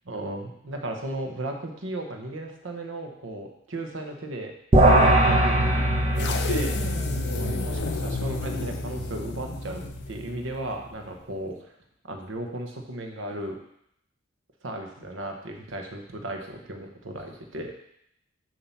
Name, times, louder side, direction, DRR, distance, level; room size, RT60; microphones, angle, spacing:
voice 1, 0.0-4.5 5.2-5.8 6.2-7.0 7.3-11.6 12.1-13.6 14.6-17.7, right 1 dB, 75° right, 3 dB, 1.0 m, -35 dB
sound 1, 4.7-10.2, right 1 dB, 30° right, 0.7 m, -23 dB
sound 2, 6.2-10.5, left 4 dB, 60° left, 0.5 m, -33 dB
7.1 x 2.8 x 5.6 m, 0.75 s
head